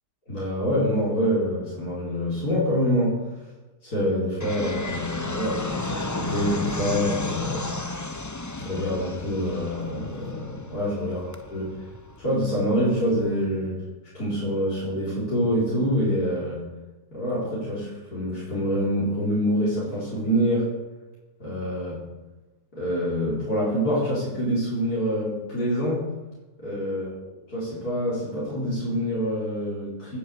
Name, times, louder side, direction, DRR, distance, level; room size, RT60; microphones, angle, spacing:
voice 1, 0.3-3.2 3.8-7.7 8.6-11.6 12.2-13.8 14.1-16.6 17.1-20.7 21.4-22.0 22.7-26.0 26.6-27.1 27.5-30.2, equal, 65° left, -8 dB, 5.2 m, -26 dB
Fixed-wing aircraft airplane, 4.4-13.4, left 2 dB, 20° left, 0.5 m, -34 dB
19.5 x 8.5 x 7.7 m, 1.1 s
omnidirectional pair, 1.7 m